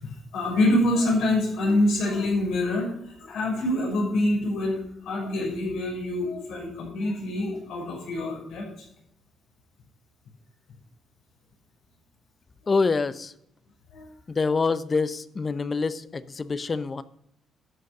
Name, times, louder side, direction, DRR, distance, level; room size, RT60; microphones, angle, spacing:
voice 1, 0.0-8.9 12.6-12.7 13.9-14.1, left 1 dB, 85° left, -3 dB, 5.6 m, -26 dB
voice 2, 12.7-13.3 14.3-17.0, left 4 dB, 35° left, 15 dB, 0.7 m, -26 dB
12.0 x 6.5 x 6.6 m, 0.77 s
cardioid pair, 90°, 0 cm